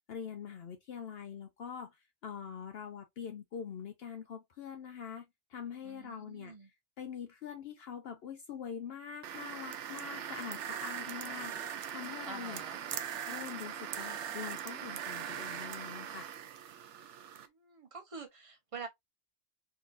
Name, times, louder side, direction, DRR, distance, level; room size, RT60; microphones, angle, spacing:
voice 1, 0.1-6.5 7.0-12.6 13.3-16.3, left 7 dB, 65° left, 0.8 m, -44 dB
voice 2, 5.8-6.7 12.2-12.8 17.4-18.9, right 4 dB, 30° right, 0.9 m, -47 dB
sound 1, 9.2-17.5, right 9 dB, 90° right, 0.9 m, -41 dB
3.7 x 2.8 x 2.4 m
omnidirectional pair, 1.2 m